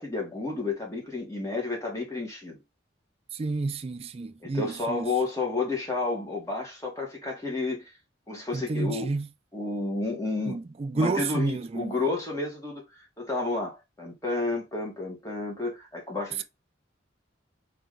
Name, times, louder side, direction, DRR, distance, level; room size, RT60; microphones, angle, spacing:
voice 1, 0.0-2.6 4.4-7.9 8.3-9.1 9.5-10.6 10.9-12.8 13.2-16.4, left 3 dB, 15° left, 1.6 m, -31 dB
voice 2, 3.3-5.1 8.5-9.3 10.5-12.0, right 3 dB, 30° right, 0.3 m, -30 dB
3.4 x 3.3 x 3.7 m
head